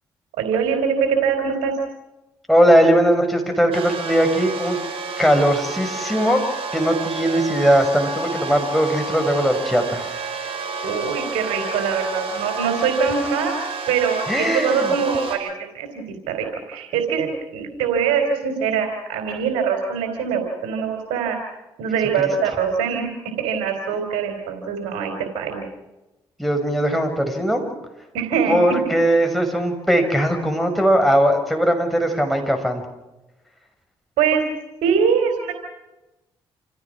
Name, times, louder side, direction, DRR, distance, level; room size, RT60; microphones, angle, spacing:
voice 1, 0.4-1.7 10.8-13.5 13.9-21.4 21.8-23.1 23.4-25.7 28.1-28.6 34.2-34.4 34.8-35.5, right 6 dB, 85° right, 3 dB, 3.7 m, -23 dB
voice 2, 2.5-4.8 5.2-6.4 6.7-10.1 14.3-14.9 26.4-27.7 28.5-32.8, equal, ahead, 3 dB, 6.1 m, -19 dB
sound 1, 3.7-15.4, right 4 dB, 65° right, 5.8 m, -30 dB
28.0 x 16.0 x 6.1 m, 1.0 s
supercardioid pair, 60°, 10 cm